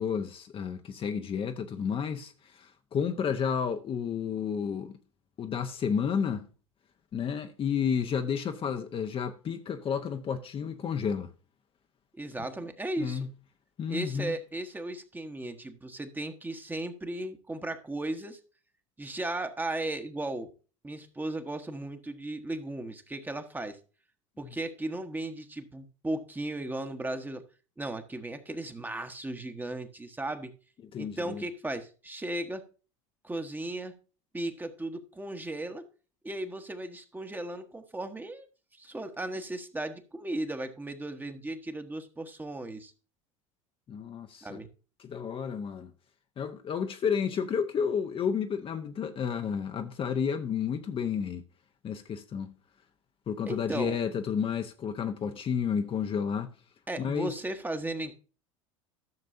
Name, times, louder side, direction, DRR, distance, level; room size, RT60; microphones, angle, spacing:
voice 1, 0.0-5.0 5.4-6.5 7.1-11.3 13.0-13.3 13.8-14.4 30.9-31.4 43.9-44.6 45.0-45.9 46.4-51.4 51.8-52.5 53.3-56.5 57.0-57.3, left 7 dB, 30° left, 0.9 m, -31 dB
voice 2, 12.1-13.3 13.9-18.4 19.0-20.5 20.8-23.8 24.4-27.4 27.8-30.5 31.0-32.6 33.2-33.9 34.3-35.8 36.2-38.5 38.7-42.9 44.4-44.7 53.5-54.0 56.9-58.2, right 1 dB, 10° right, 1.2 m, -36 dB
13.5 x 6.5 x 2.6 m
hypercardioid pair, 75°, 17 cm